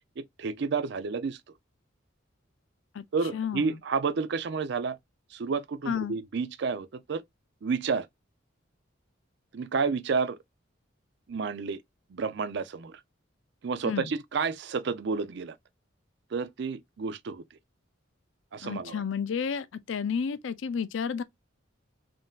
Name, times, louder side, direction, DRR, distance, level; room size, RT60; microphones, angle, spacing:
voice 1, 0.2-1.4 3.1-5.0 5.3-7.2 7.6-8.1 9.5-10.4 11.3-11.8 12.1-13.0 13.6-15.5 16.3-17.4 18.5-19.0, right 5 dB, 55° right, 0.4 m, -30 dB
voice 2, 3.3-3.8 5.9-6.2 13.8-14.1 18.6-21.2, left 6 dB, 70° left, 0.4 m, -31 dB
3.7 x 2.6 x 2.3 m
head